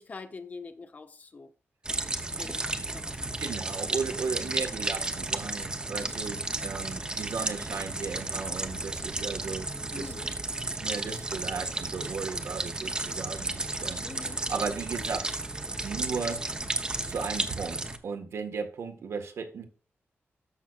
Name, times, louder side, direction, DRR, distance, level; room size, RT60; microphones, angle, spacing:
voice 1, 0.0-1.5 2.4-3.4 4.1-4.2 4.4-4.6 6.0-6.3 7.6-7.7 9.9-10.4 14.0-14.7, left 4 dB, 35° left, 0.7 m, -45 dB
sound 1, 1.8-18.0, right 2 dB, 20° right, 0.8 m, -33 dB
voice 2, 3.4-10.1 10.8-15.4 15.8-16.4 17.1-19.7, right 5 dB, 85° right, 1.6 m, -36 dB
13.5 x 6.0 x 2.5 m
wide cardioid pair, 180°, 4 cm